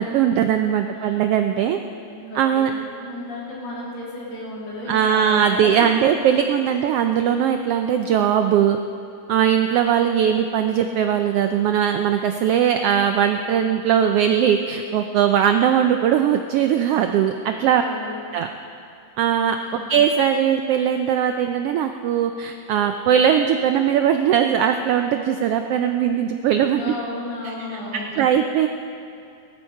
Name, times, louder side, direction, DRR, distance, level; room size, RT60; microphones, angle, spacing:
voice 1, 0.0-1.8 2.3-2.7 4.9-8.8 9.3-17.8 18.3-18.5 19.2-19.6 19.9-26.9 27.4-27.8 28.1-28.7, right 9 dB, 90° right, 6 dB, 1.3 m, -20 dB
voice 2, 2.1-5.7 6.7-6.8 17.6-18.3 19.6-19.9 26.7-28.1, left 2 dB, 60° left, -7 dB, 4.3 m, -34 dB
18.0 x 13.5 x 4.7 m, 2.5 s
omnidirectional pair, 3.3 m